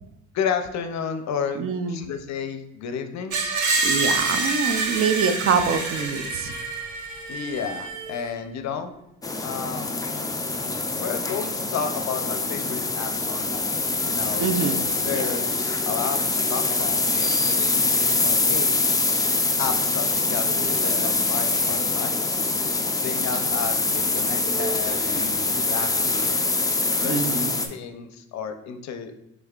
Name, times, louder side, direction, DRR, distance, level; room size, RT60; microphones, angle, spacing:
voice 1, 0.3-1.6 1.9-3.4 7.3-9.0 9.4-10.0 11.0-13.8 14.1-14.5 15.0-19.0 19.6-22.4 23.0-26.4 27.0-29.1, left 7 dB, 65° left, 7 dB, 0.6 m, -32 dB
voice 2, 1.6-2.0 3.8-6.5 14.4-14.8 15.1-15.3 27.0-27.7, right 5 dB, 50° right, 9 dB, 0.5 m, -25 dB
Screech, 3.3-8.3, right 3 dB, 75° right, 0.9 m, -26 dB
sound 1, 9.2-27.7, left 3 dB, 10° left, 0.4 m, -24 dB
sound 2, 20.5-21.8 24.4-25.6, equal, 40° left, 1.0 m, -37 dB
5.4 x 3.4 x 2.4 m, 0.90 s
cardioid pair, 90°, 30 cm